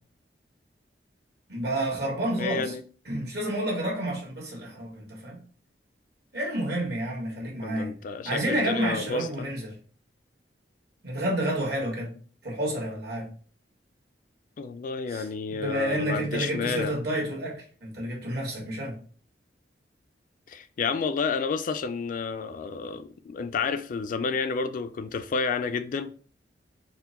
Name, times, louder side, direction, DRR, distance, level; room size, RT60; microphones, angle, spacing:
voice 1, 1.5-2.7 3.0-5.4 6.3-7.9 8.2-9.7 11.0-12.1 12.4-13.3 15.1-19.0, right 1 dB, 65° right, 1.6 m, -30 dB
voice 2, 2.3-2.8 7.6-9.5 14.6-17.0 20.5-26.1, left 5 dB, 50° left, 0.3 m, -30 dB
4.4 x 2.1 x 4.0 m
head